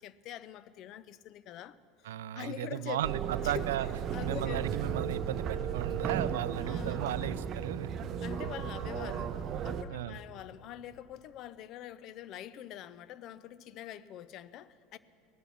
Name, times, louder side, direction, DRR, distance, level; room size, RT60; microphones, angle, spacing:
voice 1, 0.0-2.1 2.3-3.0 3.4-4.7 6.6-7.3 8.2-15.0, left 11 dB, 50° left, 0.5 m, -45 dB
voice 2, 2.0-3.9 4.2-7.9 9.9-10.2, right 12 dB, 75° right, 0.4 m, -35 dB
sound 1, 3.0-9.8, right 8 dB, 45° right, 0.7 m, -35 dB
18.0 x 12.0 x 6.0 m
hypercardioid pair, 80°, 0 cm